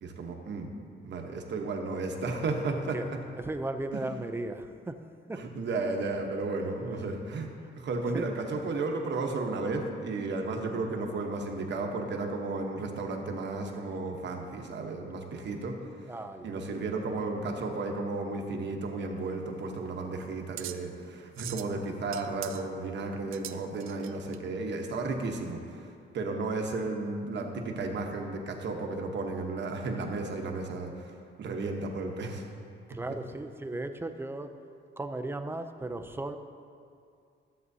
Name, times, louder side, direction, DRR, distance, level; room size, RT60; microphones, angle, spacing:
voice 1, 0.0-0.7 1.0-3.2 3.9-4.0 5.3-7.5 7.8-16.1 16.4-32.5 32.9-33.2, right 3 dB, 60° right, 3 dB, 1.0 m, -33 dB
voice 2, 3.3-5.4 8.1-8.3 16.0-16.5 32.9-34.5 35.0-36.4, right 2 dB, 10° right, 8 dB, 0.4 m, -36 dB
sound 1, 19.2-24.4, right 12 dB, 80° right, 0.5 m, -44 dB
13.5 x 7.5 x 2.7 m, 2.4 s
cardioid pair, 130°, 21 cm